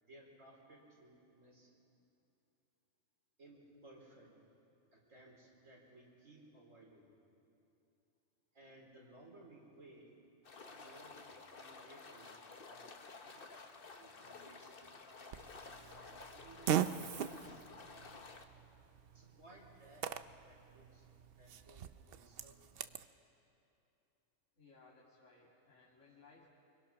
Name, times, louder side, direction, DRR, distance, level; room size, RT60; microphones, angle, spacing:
voice 1, 0.1-1.8 3.4-4.5 4.9-7.1 8.5-10.2 10.6-13.6 14.0-17.6 17.9-18.1 19.1-20.1 20.5-21.1 21.3-23.0, right 1 dB, 85° right, -1 dB, 4.3 m, -61 dB
sound 1, 10.4-18.4, left 4 dB, 50° left, 1.3 m, -53 dB
Fart, 15.3-23.1, right 9 dB, 55° right, 0.8 m, -41 dB
voice 2, 24.6-26.5, left 4 dB, 75° left, -6 dB, 3.0 m, -63 dB
24.5 x 24.5 x 5.9 m, 2.8 s
omnidirectional pair, 1.3 m